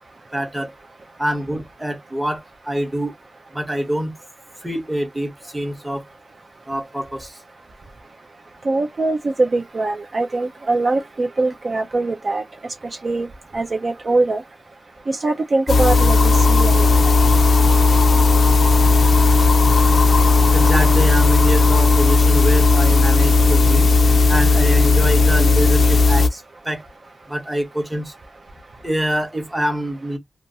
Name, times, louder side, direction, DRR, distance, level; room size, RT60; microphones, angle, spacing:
voice 1, 0.3-0.7 1.2-3.1 3.5-4.1 4.6-6.0 6.7-7.3 20.5-23.9 24.3-26.8 27.3-28.1 28.8-30.2, right 1 dB, 5° right, 0.8 m, -25 dB
voice 2, 8.7-12.4 13.0-13.3 13.5-14.4 15.1-17.1, right 2 dB, 40° right, 0.3 m, -22 dB
sound 1, 15.7-26.3, left 3 dB, 60° left, 0.4 m, -14 dB
2.6 x 2.3 x 2.6 m
wide cardioid pair, 165°, 0 cm